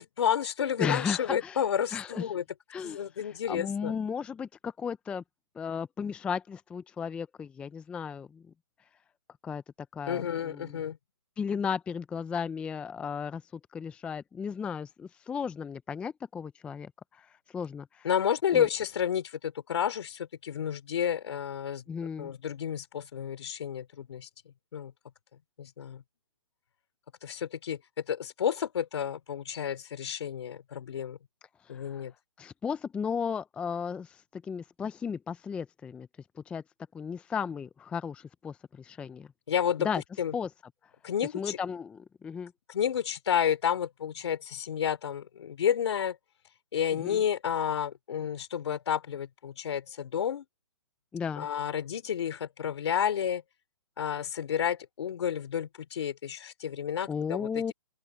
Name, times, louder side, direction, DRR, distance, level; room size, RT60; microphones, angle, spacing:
voice 1, 0.0-2.4 2.8-3.9 10.1-11.0 18.0-21.8 22.2-24.3 24.7-24.9 25.6-26.0 27.2-27.8 28.1-31.2 31.7-32.1 39.5-39.9 40.2-40.3 41.0-41.6 42.7-46.2 46.7-50.5 51.4-53.4 54.0-57.7, left 8 dB, 60° left, 3.4 m, -31 dB
voice 2, 0.8-1.6 1.9-2.2 2.7-5.2 5.6-8.4 9.4-9.6 9.9-10.8 11.4-13.4 13.7-18.1 18.5-18.7 21.9-22.3 31.6-32.0 32.4-36.1 36.4-36.6 36.9-39.3 39.8-40.0 40.3-40.5 41.3-42.5 46.9-47.2 51.1-51.5 57.1-57.7, left 6 dB, 5° left, 0.5 m, -35 dB
open air
hypercardioid pair, 145°, 16 cm